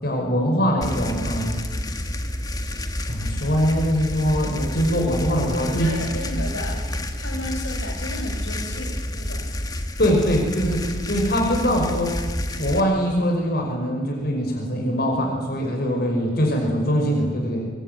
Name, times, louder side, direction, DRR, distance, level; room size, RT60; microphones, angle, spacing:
voice 1, 0.0-1.7 3.0-5.9 10.0-12.1 12.5-17.7, equal, 50° left, 1 dB, 5.6 m, -22 dB
sound 1, 0.8-12.8, left 1 dB, 20° left, 1.6 m, -29 dB
voice 2, 5.6-6.8 7.2-9.5, left 1 dB, 70° left, 2 dB, 6.0 m, -33 dB
25.5 x 23.0 x 9.3 m, 1.5 s
head